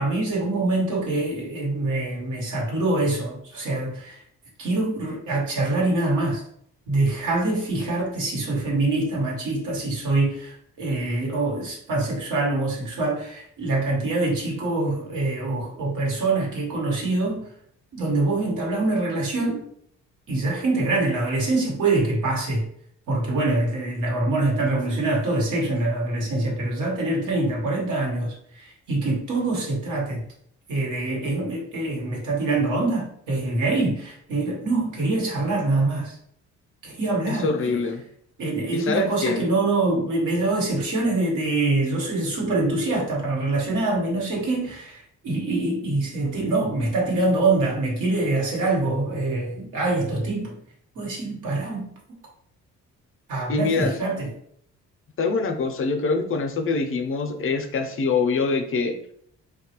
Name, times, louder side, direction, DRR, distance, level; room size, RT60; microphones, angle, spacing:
voice 1, 0.0-4.2 4.6-6.4 6.9-17.5 17.9-19.6 20.3-22.7 23.1-30.2 30.7-36.2 36.8-37.8 38.4-50.5 50.9-51.9 53.3-54.3, right 2 dB, 80° right, -2 dB, 1.1 m, -24 dB
voice 2, 37.3-38.0 38.7-39.4 53.5-54.0 55.2-58.9, left 4 dB, 45° left, 5 dB, 0.5 m, -24 dB
3.1 x 2.3 x 2.9 m, 0.66 s
cardioid pair, 90°, 30 cm